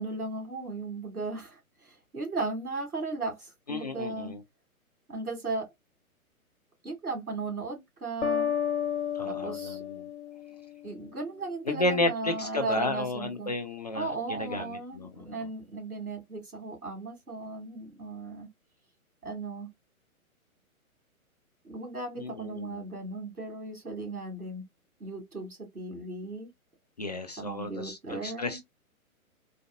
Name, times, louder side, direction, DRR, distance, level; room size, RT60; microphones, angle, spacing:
voice 1, 0.0-4.3 5.1-5.7 6.8-8.5 9.2-9.8 10.8-13.5 13.9-18.5 19.2-19.7 21.6-24.6 25.0-26.5 27.4-28.6, right 3 dB, 80° right, 2.5 m, -36 dB
voice 2, 3.7-4.4 9.1-10.1 11.6-15.3 22.2-22.8 27.0-28.7, left 2 dB, 30° left, 0.4 m, -32 dB
sound 1, 8.2-11.0, left 8 dB, 50° left, 1.3 m, -32 dB
4.1 x 2.5 x 2.4 m
figure-of-eight pair, 125°, 43 cm